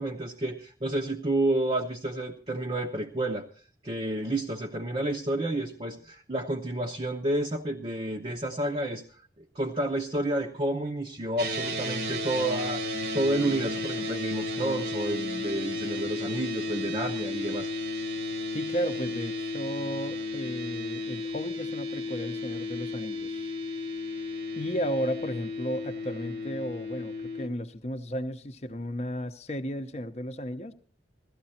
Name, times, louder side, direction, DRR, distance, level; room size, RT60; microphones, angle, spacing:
voice 1, 0.0-3.5 3.8-9.0 9.4-17.7, right 1 dB, 30° right, 1 dB, 0.8 m, -30 dB
sound 1, 11.4-27.5, left 2 dB, 60° right, 1.3 m, -33 dB
voice 2, 18.5-23.5 24.6-30.7, equal, 35° left, 8 dB, 0.8 m, -34 dB
16.0 x 13.5 x 4.3 m, 0.41 s
head